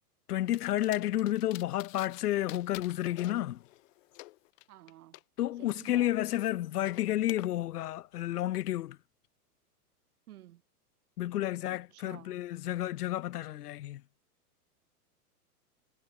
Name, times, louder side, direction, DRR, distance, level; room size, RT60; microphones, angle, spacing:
voice 1, 0.3-3.6 5.4-9.0 11.2-14.0, left 14 dB, 75° left, 1.2 m, -31 dB
sound 1, 0.5-2.2 2.5-5.2 5.7-7.5, left 20 dB, 55° left, 2.6 m, -50 dB
voice 2, 4.7-5.2 5.6-6.3 10.3-10.6 11.7-12.4, right 14 dB, 70° right, 3.2 m, -52 dB
hypercardioid pair, 125°, 46 cm